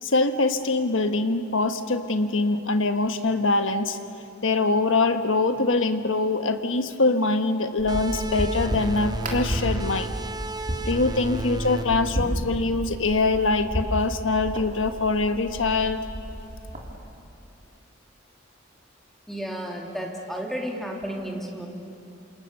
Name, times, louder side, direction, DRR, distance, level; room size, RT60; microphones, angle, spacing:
voice 1, 0.0-4.0 4.4-10.1 10.8-16.0, left 3 dB, 70° left, 8 dB, 1.4 m, -23 dB
sound 1, 7.8-17.0, equal, 40° right, 3.6 m, -32 dB
sound 2, 7.9-13.1, right 3 dB, 20° right, 0.6 m, -34 dB
voice 2, 19.3-21.7, equal, ahead, -1 dB, 3.1 m, -32 dB
28.5 x 27.0 x 6.9 m, 2.6 s
head